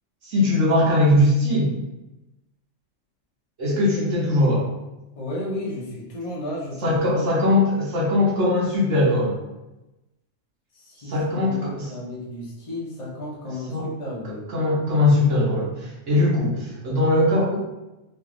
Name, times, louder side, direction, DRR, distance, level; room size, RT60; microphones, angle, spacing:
voice 1, 0.2-1.7 3.6-4.6 6.8-9.3 11.0-11.9 13.7-13.9 14.3-17.6, left 1 dB, 70° right, -6 dB, 1.1 m, -20 dB
voice 2, 5.1-7.2 10.7-14.4, left 1 dB, 40° left, -5 dB, 0.6 m, -33 dB
3.1 x 2.5 x 2.4 m, 0.98 s
omnidirectional pair, 1.3 m